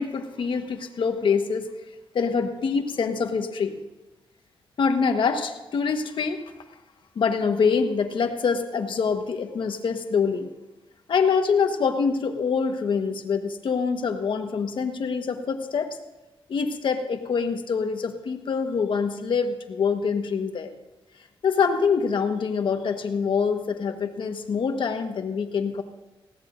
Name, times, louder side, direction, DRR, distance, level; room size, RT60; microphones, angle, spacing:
voice 1, 0.0-1.7 2.1-3.8 4.8-6.4 7.1-10.5 11.1-16.0 16.5-20.7 21.4-25.8, left 5 dB, 60° left, 6 dB, 1.3 m, -25 dB
19.5 x 16.5 x 2.6 m, 1.1 s
wide cardioid pair, 120°, 10 cm